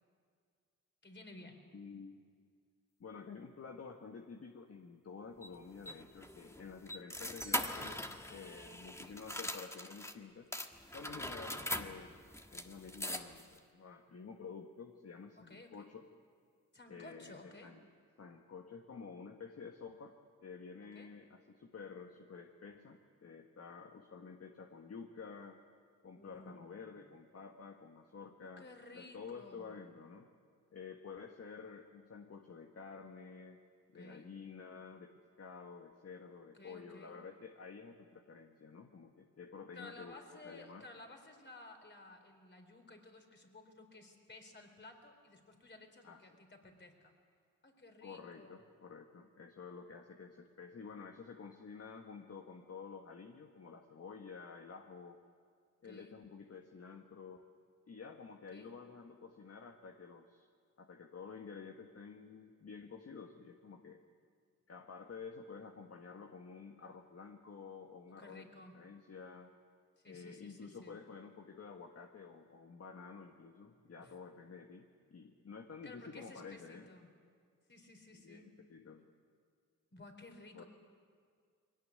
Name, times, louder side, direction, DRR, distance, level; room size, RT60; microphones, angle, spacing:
voice 1, 1.0-1.7 9.0-9.2 15.4-15.9 16.7-17.7 20.9-21.1 26.1-26.9 28.4-29.7 33.9-34.3 36.5-37.2 39.7-47.1 47.6-48.5 55.8-56.2 58.5-58.7 68.1-68.8 70.0-71.0 74.0-74.2 75.8-77.1 77.7-78.5 79.9-80.6, left 2 dB, 35° left, 4 dB, 4.2 m, -55 dB
voice 2, 1.7-2.2 3.0-10.5 10.9-16.0 16.9-17.8 18.2-25.6 26.0-28.7 28.9-30.3 30.7-33.6 33.9-40.2 40.4-40.8 46.0-46.2 48.0-55.2 55.8-57.4 57.9-60.5 60.8-64.0 64.7-68.5 68.7-69.5 70.1-76.9 78.1-79.0 80.5-80.6, left 5 dB, 50° left, 3 dB, 1.6 m, -50 dB
sound 1, 5.4-10.2 10.5-13.6, left 1 dB, 10° left, 1.6 m, -42 dB
22.0 x 18.0 x 9.6 m, 2.1 s
cardioid pair, 60°, 31 cm